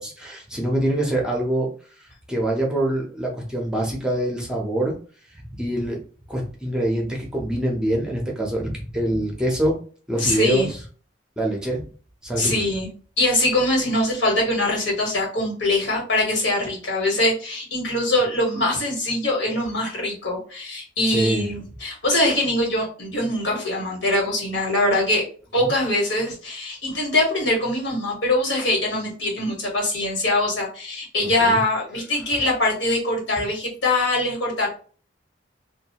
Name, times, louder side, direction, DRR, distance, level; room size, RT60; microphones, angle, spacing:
voice 1, 0.0-1.7 2.3-5.0 5.5-6.0 6.3-9.8 10.1-10.8 11.4-11.8 12.2-12.7 21.1-21.5 25.6-25.7 31.2-31.6, right 1 dB, 5° right, -1 dB, 0.6 m, -24 dB
voice 2, 10.2-10.7 12.4-12.9 13.2-25.2 25.5-34.7, left 1 dB, 80° left, -2 dB, 1.3 m, -23 dB
2.5 x 2.3 x 2.8 m, 0.40 s
head